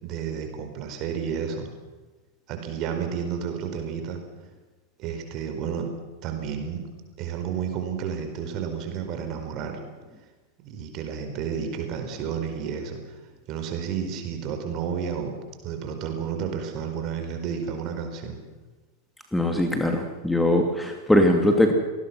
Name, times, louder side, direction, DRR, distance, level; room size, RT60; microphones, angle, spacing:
voice 1, 0.0-1.7 2.5-4.2 5.0-5.9 6.2-6.8 7.2-9.8 10.6-13.0 13.5-15.3 15.6-18.4, right 7 dB, 40° right, 5 dB, 4.6 m, -31 dB
voice 2, 19.3-21.7, left 1 dB, 5° left, 4 dB, 2.5 m, -21 dB
26.5 x 19.5 x 6.2 m, 1.3 s
figure-of-eight pair, 90°, 0 cm